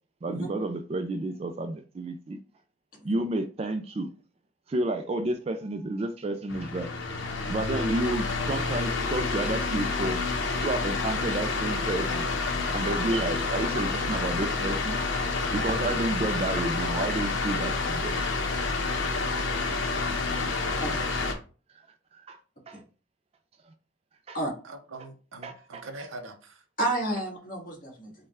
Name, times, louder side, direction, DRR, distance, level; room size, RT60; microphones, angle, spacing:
voice 1, 0.2-2.4 3.0-4.1 4.7-6.9 7.4-10.3 10.6-12.3 12.7-15.0 15.5-18.1 19.5-19.6 20.3-20.5 22.1-22.4 22.7-22.8 24.3-24.4 25.4-25.8, right 2 dB, 30° right, 0.3 m, -31 dB
sound 1, 6.5-21.3, left 3 dB, 75° left, 0.8 m, -29 dB
voice 2, 24.6-26.6 28.0-28.1, right 2 dB, 85° right, 0.7 m, -43 dB
voice 3, 26.8-28.1, right 1 dB, 45° left, 1.8 m, -30 dB
5.2 x 2.2 x 3.5 m
head